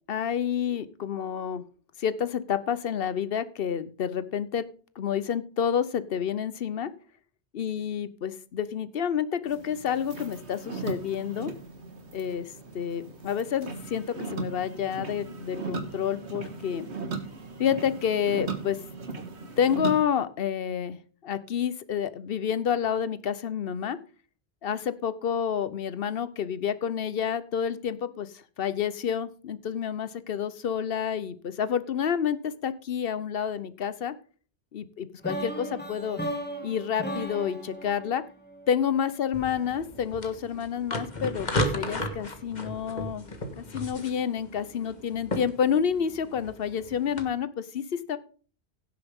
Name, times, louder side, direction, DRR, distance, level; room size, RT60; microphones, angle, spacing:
voice 1, 0.1-1.6 2.0-4.6 5.0-6.9 7.5-11.5 12.1-12.5 12.7-16.9 17.6-18.8 19.6-21.0 21.2-24.0 24.6-28.3 28.6-34.1 34.7-36.2 36.6-38.2 38.7-43.3 43.6-48.2, left 8 dB, 60° left, 14 dB, 1.0 m, -29 dB
sound 1, 9.4-20.0, right 4 dB, 80° right, 1.9 m, -38 dB
sound 2, 35.2-39.2, right 1 dB, 10° left, 1.9 m, -36 dB
sound 3, 39.3-47.2, left 1 dB, 40° left, 1.7 m, -35 dB
16.5 x 7.6 x 3.6 m, 0.41 s
omnidirectional pair, 1.1 m